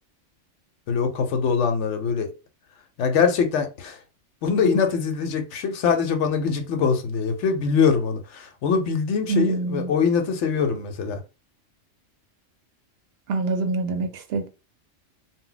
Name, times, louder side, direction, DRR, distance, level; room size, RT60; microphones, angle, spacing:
voice 1, 0.9-2.3 3.0-4.0 4.4-11.2, left 6 dB, 75° left, 0.9 m, -23 dB
voice 2, 9.3-9.9 13.3-14.5, right 3 dB, 65° right, 0.7 m, -25 dB
2.2 x 2.0 x 3.8 m
omnidirectional pair, 1.3 m